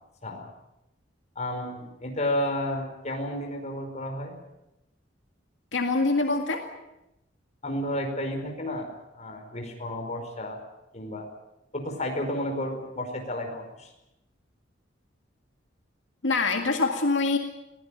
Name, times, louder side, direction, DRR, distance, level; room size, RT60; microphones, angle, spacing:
voice 1, 1.3-4.4 7.6-10.6 10.9-11.3 11.7-13.9, left 1 dB, 40° left, 3 dB, 4.9 m, -32 dB
voice 2, 5.7-6.6 16.2-17.4, left 3 dB, 80° left, 4 dB, 2.0 m, -24 dB
22.5 x 16.5 x 9.2 m, 0.91 s
head